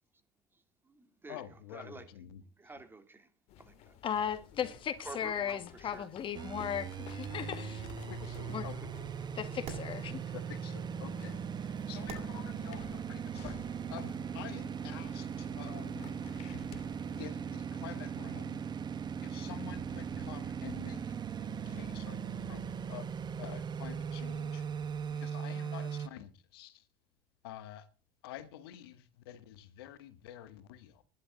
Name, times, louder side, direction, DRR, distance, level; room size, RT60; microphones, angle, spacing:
voice 1, 0.5-1.4 1.7-2.1 2.4-3.3 3.6-4.0 5.0-6.1, right 3 dB, 20° right, 3.2 m, -50 dB
voice 2, 1.3-2.4 8.1-8.8 10.3-13.6 13.9-16.1 17.2-18.6 19.2-21.0 21.3-24.7 25.1-26.8 27.4-27.9 28.2-31.0, left 12 dB, 85° left, 1.5 m, -48 dB
sound 1, 3.5-17.3, left 10 dB, 65° left, 1.9 m, -53 dB
voice 3, 4.0-7.8 8.5-8.7 9.4-10.2, left 8 dB, 45° left, 1.8 m, -36 dB
sound 2, 6.3-26.1, right 7 dB, 35° right, 1.3 m, -39 dB
sound 3, 6.5-25.1, right 5 dB, 55° right, 7.9 m, -53 dB
19.5 x 11.5 x 4.0 m
supercardioid pair, 85°, 12 cm